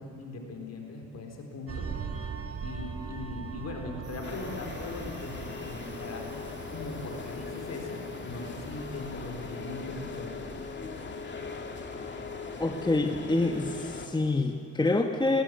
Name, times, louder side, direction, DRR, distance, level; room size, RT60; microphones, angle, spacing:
voice 1, 0.0-1.9 2.6-6.4 6.7-10.4, left 2 dB, 60° left, 2 dB, 4.2 m, -40 dB
sound 1, 1.7-10.7 11.1-11.3, right 6 dB, 50° right, 1.7 m, -42 dB
sound 2, 4.0-12.2, right 3 dB, 75° right, 5.5 m, -55 dB
sound 3, 4.2-14.1, left 4 dB, 35° left, 2.2 m, -39 dB
voice 2, 12.6-15.4, left 2 dB, 15° left, 5 dB, 1.2 m, -27 dB
19.5 x 16.0 x 9.6 m, 2.7 s
cardioid pair, 90°, 30 cm